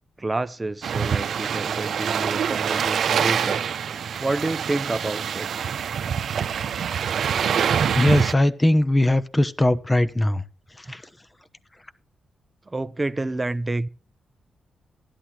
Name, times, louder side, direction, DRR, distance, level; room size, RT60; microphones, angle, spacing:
voice 1, 0.2-3.6 4.2-5.6 12.7-13.9, right 2 dB, 25° right, 0.6 m, -29 dB
sound 1, 0.8-8.3, right 7 dB, 75° right, 0.7 m, -25 dB
voice 2, 7.9-10.4 10.9-11.0, left 1 dB, 15° left, 0.9 m, -20 dB
15.5 x 11.0 x 2.9 m
cardioid pair, 70°, 0 cm